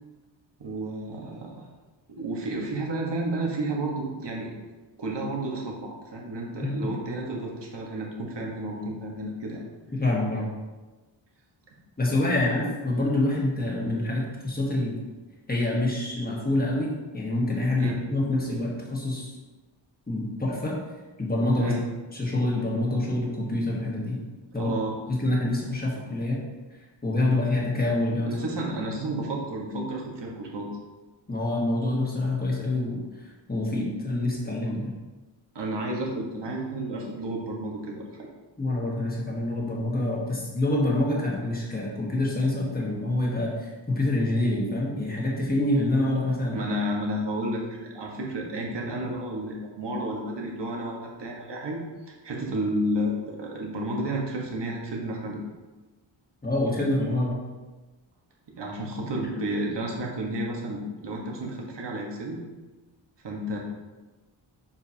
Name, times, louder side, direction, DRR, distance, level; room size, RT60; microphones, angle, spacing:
voice 1, 0.6-1.5 2.1-4.5 5.0-9.6 17.8-17.9 21.5-21.8 24.5-25.0 28.3-30.7 35.5-38.3 46.5-55.4 58.5-62.4 63.2-63.6, right 1 dB, 60° right, -1 dB, 1.4 m, -31 dB
voice 2, 6.6-6.9 9.9-10.5 12.0-15.0 15.5-19.3 20.1-20.8 21.2-21.7 22.1-24.2 24.5-24.7 25.1-26.4 27.0-28.3 31.3-33.0 33.5-34.9 38.6-46.6 56.4-57.4, left 2 dB, 20° left, -3 dB, 1.4 m, -26 dB
7.0 x 5.0 x 2.8 m, 1.2 s
wide cardioid pair, 130°, 47 cm